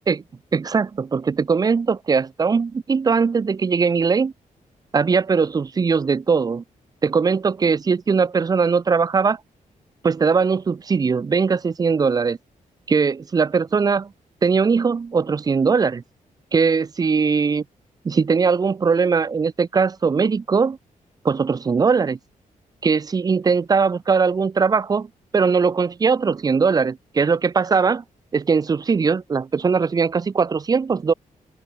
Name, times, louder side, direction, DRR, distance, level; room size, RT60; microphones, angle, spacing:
voice 1, 0.5-4.3 4.9-6.6 7.0-9.4 10.0-12.4 12.9-14.1 14.4-16.0 16.5-17.6 18.0-20.8 21.2-22.2 22.8-28.0 28.3-31.1, right 5 dB, 25° right, 0.6 m, -20 dB
open air
wide cardioid pair, 160°, 14 cm